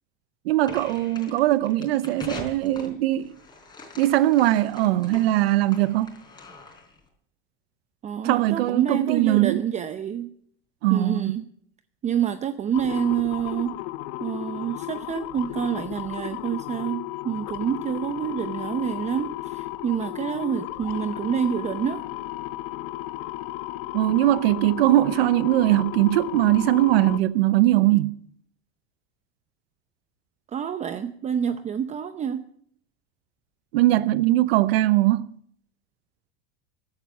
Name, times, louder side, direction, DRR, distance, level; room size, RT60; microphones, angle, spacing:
voice 1, 0.4-3.4 4.0-6.1 8.2-9.6 10.8-11.3 23.9-28.2 33.7-35.3, right 15 dB, 80° right, 0.8 m, -21 dB
sound 1, 0.6-7.0, left 3 dB, 15° left, 4.1 m, -43 dB
voice 2, 8.0-10.3 10.9-11.4 12.0-13.8 14.2-22.0 30.5-32.5, right 8 dB, 25° right, 0.7 m, -27 dB
sound 2, 12.7-27.2, left 17 dB, 65° left, 1.1 m, -34 dB
14.5 x 12.0 x 7.2 m
supercardioid pair, 135°, 30 cm